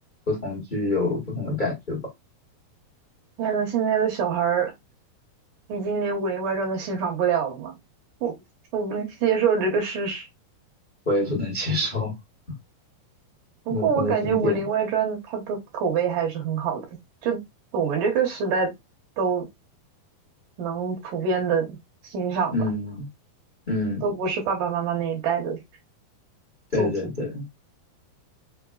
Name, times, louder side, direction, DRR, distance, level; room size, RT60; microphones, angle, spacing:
voice 1, 0.3-2.0 11.0-12.1 13.7-14.6 22.5-23.1 23.7-24.0 26.7-27.4, left 2 dB, 35° left, 0.7 m, -26 dB
voice 2, 3.4-4.7 5.7-7.7 8.2-8.3 8.7-10.3 13.7-16.8 17.2-17.4 17.7-18.7 19.2-19.5 20.6-21.7 22.0-22.6 24.0-25.6 26.8-26.9, right 6 dB, 65° right, 2.3 m, -25 dB
5.8 x 3.2 x 2.3 m
omnidirectional pair, 4.6 m